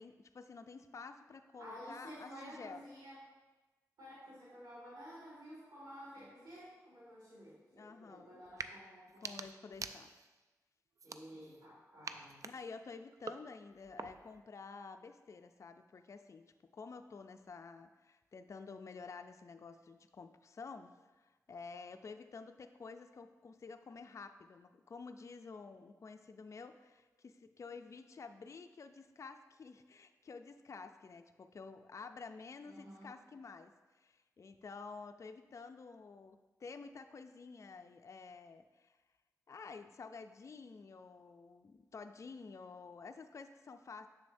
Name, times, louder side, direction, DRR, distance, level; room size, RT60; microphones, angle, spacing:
voice 1, 0.0-2.9 7.7-8.4 9.2-10.1 12.4-39.0 39.5-44.1, left 4 dB, 50° left, 7 dB, 0.3 m, -51 dB
voice 2, 1.6-3.2 4.0-9.3 11.0-12.4 32.7-33.1, equal, 85° right, -7 dB, 2.1 m, -52 dB
sound 1, 8.5-8.7 9.1-10.4 11.0-11.7 12.0-14.4, right 4 dB, 55° right, 0.3 m, -47 dB
7.1 x 6.2 x 2.6 m, 1.2 s
cardioid pair, 55°, 6 cm